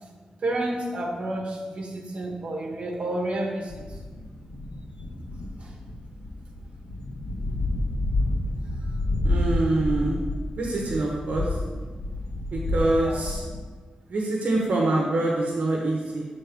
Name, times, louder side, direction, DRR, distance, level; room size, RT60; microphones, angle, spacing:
voice 1, 0.4-3.7 5.6-5.7 12.8-13.3, right 1 dB, 50° right, -1 dB, 1.4 m, -30 dB
sound 1, 3.7-13.6, left 2 dB, 50° left, 1.9 m, -29 dB
voice 2, 9.2-10.3 10.6-11.5 12.5-13.4 14.1-16.3, right 2 dB, 75° right, -2 dB, 1.2 m, -25 dB
7.5 x 4.0 x 5.3 m, 1.4 s
wide cardioid pair, 155°, 3 cm